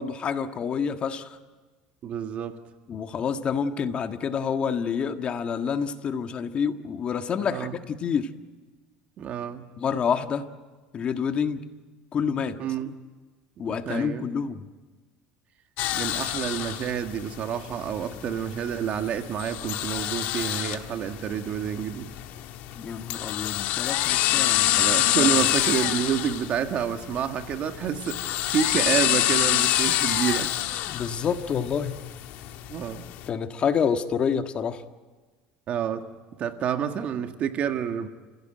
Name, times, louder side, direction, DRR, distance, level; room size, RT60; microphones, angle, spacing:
voice 1, 0.0-1.4 2.9-8.3 9.8-10.5 10.9-11.6 12.1-12.6 13.6-14.7 22.7-25.3 30.9-32.0 33.3-34.8, left 6 dB, 40° left, 1.6 m, -28 dB
voice 2, 2.0-2.6 7.4-7.8 9.2-9.6 12.6-13.0 13.6-14.3 15.9-22.1 24.8-30.6 32.7-33.1 35.7-36.1 36.4-38.1, right 8 dB, 50° right, 1.7 m, -29 dB
sound 1, 15.8-33.3, left 14 dB, 70° left, 1.5 m, -27 dB
29.5 x 16.5 x 9.2 m
supercardioid pair, 110°, 3 cm